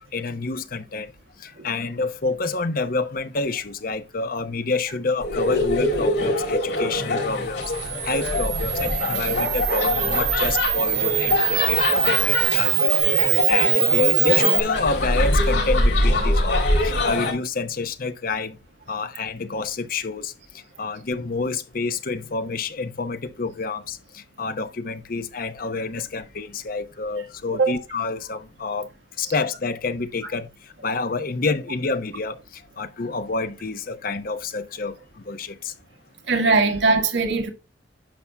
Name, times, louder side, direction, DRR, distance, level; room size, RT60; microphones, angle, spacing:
voice 1, 0.1-1.1 1.4-7.6 8.0-13.0 13.5-16.6 17.0-18.6 18.9-20.3 20.8-24.0 24.4-28.9 29.2-30.5 30.8-32.4 32.8-34.9 35.3-35.7, left 3 dB, 55° left, 0.8 m, -28 dB
sound 1, 5.2-17.3, left 2 dB, 75° left, 3.9 m, -23 dB
Camera, 7.6-14.6, right 16 dB, 60° right, 0.7 m, -23 dB
voice 2, 36.3-37.5, right 3 dB, 75° right, 1.6 m, -20 dB
10.5 x 6.9 x 2.3 m
head